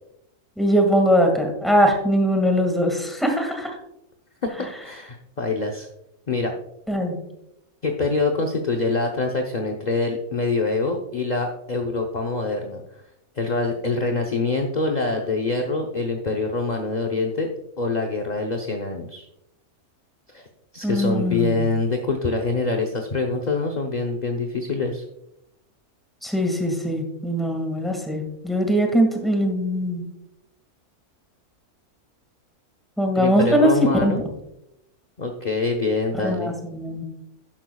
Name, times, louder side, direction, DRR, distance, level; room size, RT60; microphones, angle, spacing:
voice 1, 0.6-3.7 6.9-7.2 20.8-21.7 26.2-30.1 33.0-33.7 34.0-34.1 36.2-37.0, equal, ahead, 3 dB, 1.7 m, -21 dB
voice 2, 4.4-5.9 6.3-6.5 7.8-12.8 13.4-17.5 17.8-19.3 20.3-20.5 20.7-25.1 33.2-34.2 35.2-36.5, left 3 dB, 35° left, 2 dB, 0.7 m, -25 dB
12.0 x 10.5 x 2.3 m, 0.83 s
omnidirectional pair, 1.6 m